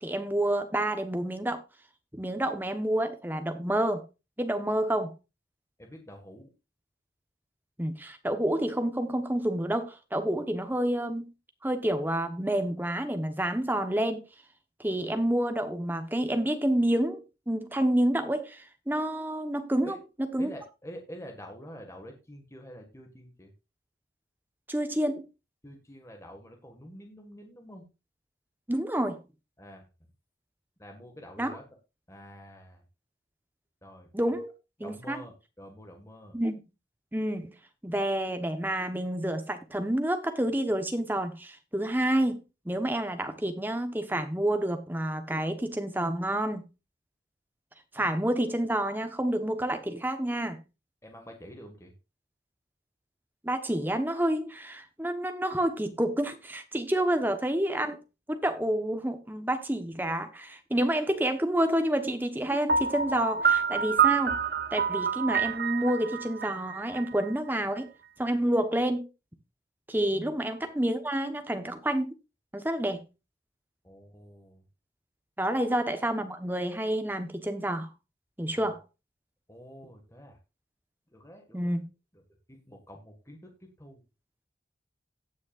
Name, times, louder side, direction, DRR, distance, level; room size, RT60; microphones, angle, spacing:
voice 1, 0.0-1.6 2.1-4.0 4.4-5.1 7.8-11.3 11.6-14.2 14.8-20.0 20.3-20.5 24.7-25.3 28.7-29.2 31.4-31.6 34.1-34.5 34.8-35.2 36.3-36.6 37.1-37.5 37.8-46.6 47.9-50.6 53.4-58.0 58.3-64.4 64.7-67.9 68.2-69.1 69.9-72.1 72.5-73.0 75.4-77.9 78.4-78.8 81.5-81.8, right 1 dB, 10° right, 1.1 m, -29 dB
voice 2, 5.8-6.5 19.8-20.0 20.4-23.5 25.6-27.8 29.6-29.9 30.8-31.6 32.1-32.8 33.8-34.4 34.8-36.4 48.0-48.2 51.0-51.9 70.1-70.3 73.8-74.6 75.5-75.6 78.5-78.7 79.5-80.4 81.1-81.8 82.5-84.0, equal, 15° left, 1.8 m, -47 dB
Piano, 62.7-67.5, right 6 dB, 55° right, 0.7 m, -27 dB
17.5 x 6.3 x 2.5 m
head